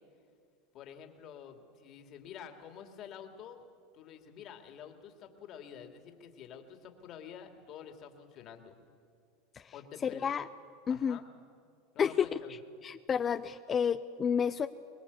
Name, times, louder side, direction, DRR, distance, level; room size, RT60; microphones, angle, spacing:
voice 1, 0.7-3.7 3.9-8.8 9.7-10.3 10.9-11.2 11.9-12.6, left 8 dB, 45° left, 5 dB, 2.5 m, -49 dB
voice 2, 10.0-10.5 10.9-11.2 12.0-12.4 12.8-14.7, left 7 dB, 30° left, 11 dB, 0.6 m, -30 dB
23.5 x 20.5 x 8.5 m, 2.3 s
supercardioid pair, 115°, 0 cm